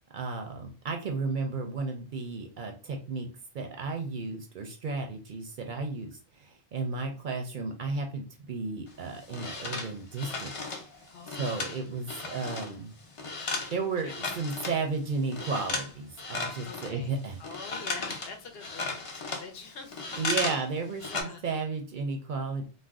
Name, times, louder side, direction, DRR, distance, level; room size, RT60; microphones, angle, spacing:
voice 1, 0.1-3.3 3.5-10.5 11.4-12.9 13.5-17.4 20.2-22.7, right 4 dB, 60° right, 4 dB, 0.6 m, -33 dB
sound 1, 8.9-12.7 13.0-14.8 15.2-15.9 16.2-20.6 20.9-21.2, left 3 dB, 40° left, 0.5 m, -35 dB
voice 2, 11.1-11.8 13.7-14.8 16.6-20.5 21.1-21.4, left 4 dB, 70° left, 5 dB, 0.8 m, -46 dB
2.4 x 2.1 x 3.4 m, 0.35 s
omnidirectional pair, 1.1 m